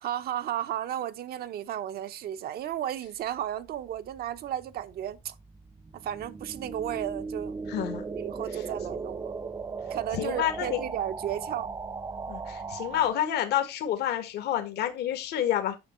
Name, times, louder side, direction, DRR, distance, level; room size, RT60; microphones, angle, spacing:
voice 1, 0.0-5.3 5.9-7.6 8.2-9.3 9.9-11.7, right 11 dB, 65° right, 1.0 m, -34 dB
sound 1, 3.8-13.1, right 4 dB, 20° right, 0.6 m, -38 dB
voice 2, 7.7-8.0 8.5-8.6 10.1-10.8 12.3-15.8, left 11 dB, 75° left, 1.8 m, -29 dB
10.0 x 6.0 x 4.4 m
cardioid pair, 110°, 17 cm